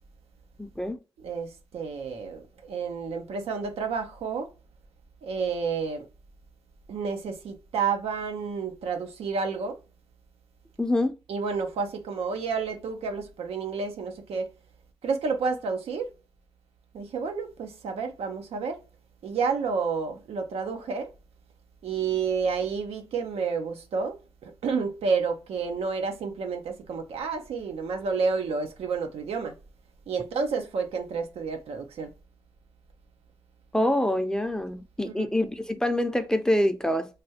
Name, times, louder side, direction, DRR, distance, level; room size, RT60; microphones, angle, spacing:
voice 1, 0.6-1.0 10.8-11.1 33.7-37.1, left 1 dB, 5° left, 0.6 m, -25 dB
voice 2, 1.2-4.5 5.2-6.1 6.9-9.8 11.3-14.5 15.0-16.1 16.9-18.8 19.2-21.1 21.8-29.5 30.1-32.1 35.0-35.5, right 5 dB, 85° right, 0.6 m, -30 dB
3.2 x 2.3 x 2.7 m
supercardioid pair, 45°, 10 cm